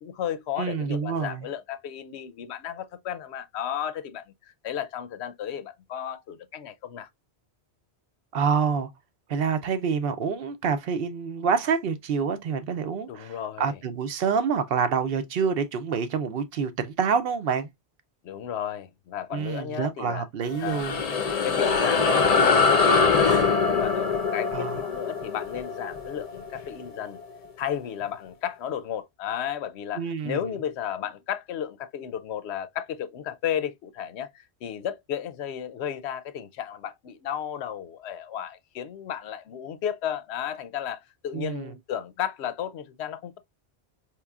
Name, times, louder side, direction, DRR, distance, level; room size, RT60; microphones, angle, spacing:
voice 1, 0.0-7.1 13.1-13.8 18.2-20.3 20.6-20.8 21.3-27.2 27.6-43.4, left 9 dB, 75° left, 0.8 m, -33 dB
voice 2, 0.6-1.5 8.3-8.9 9.3-17.7 19.3-21.0 24.5-24.8 30.0-30.4 41.3-41.7, right 6 dB, 65° right, 0.7 m, -27 dB
sound 1, 20.4-27.2, left 4 dB, 45° left, 0.6 m, -23 dB
4.5 x 2.9 x 2.3 m
omnidirectional pair, 1.2 m